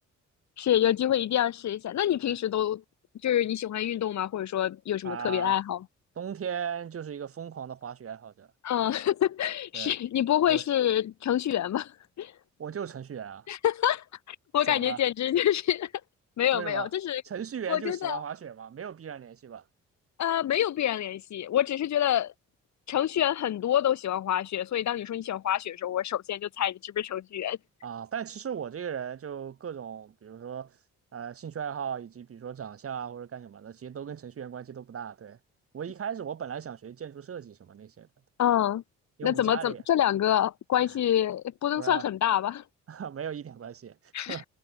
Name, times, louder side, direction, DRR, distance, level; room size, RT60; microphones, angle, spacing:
voice 1, 0.6-2.8 3.2-5.8 8.6-11.9 12.2-12.3 13.5-15.9 16.4-17.2 17.7-18.2 20.2-22.3 22.9-27.6 38.4-38.8 39.2-42.6 44.1-44.4, left 11 dB, 65° left, 2.3 m, -27 dB
voice 2, 5.0-5.6 6.2-8.5 9.7-9.9 10.5-10.6 12.6-13.5 14.7-15.0 16.5-16.9 17.2-19.6 27.8-30.8 31.1-35.4 35.7-38.1 39.2-39.8 40.9-41.0 41.8-42.1 42.9-44.5, right 8 dB, 50° right, 2.3 m, -37 dB
cardioid pair, 90°, 30 cm